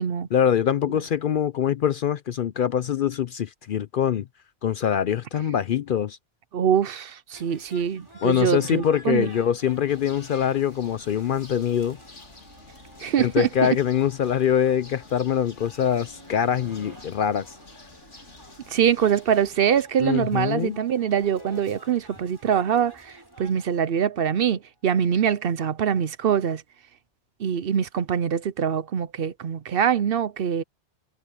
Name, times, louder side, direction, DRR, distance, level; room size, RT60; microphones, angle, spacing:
voice 1, 0.3-4.3 4.6-6.2 8.2-12.0 13.2-17.6 20.0-20.8, left 9 dB, 60° left, 0.6 m, -24 dB
voice 2, 6.5-9.3 13.0-13.8 18.7-26.6 27.4-30.6, right 8 dB, 60° right, 0.8 m, -24 dB
sound 1, 7.3-23.8, right 1 dB, 20° right, 5.0 m, -51 dB
sound 2, 9.9-19.8, left 3 dB, 85° left, 3.2 m, -49 dB
sound 3, 15.2-17.0 19.7-21.6 25.1-25.3, left 2 dB, 25° left, 2.9 m, -49 dB
omnidirectional pair, 1.2 m